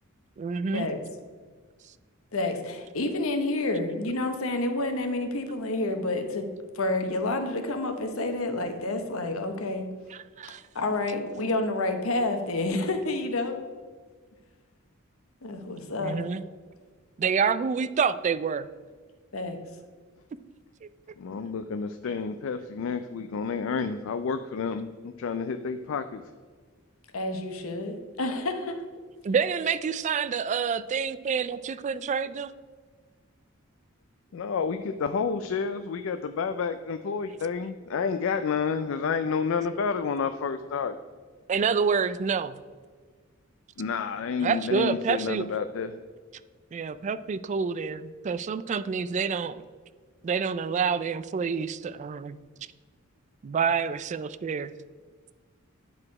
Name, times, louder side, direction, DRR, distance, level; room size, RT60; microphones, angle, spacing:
voice 1, 0.4-0.9 10.1-10.6 16.0-16.4 17.2-18.7 20.8-20.9 29.2-32.5 41.5-42.6 44.4-45.4 46.7-49.6 50.2-52.4 53.4-54.7, right 6 dB, 35° right, 15 dB, 0.3 m, -28 dB
voice 2, 2.3-6.5 6.7-9.9 10.7-13.6 15.4-16.2 19.3-19.6 27.1-28.8, left 2 dB, 85° left, 6 dB, 1.0 m, -29 dB
voice 3, 21.2-26.2 34.3-41.0 43.8-45.9, left 5 dB, 70° left, 10 dB, 0.4 m, -30 dB
9.7 x 4.8 x 4.7 m, 1.5 s
head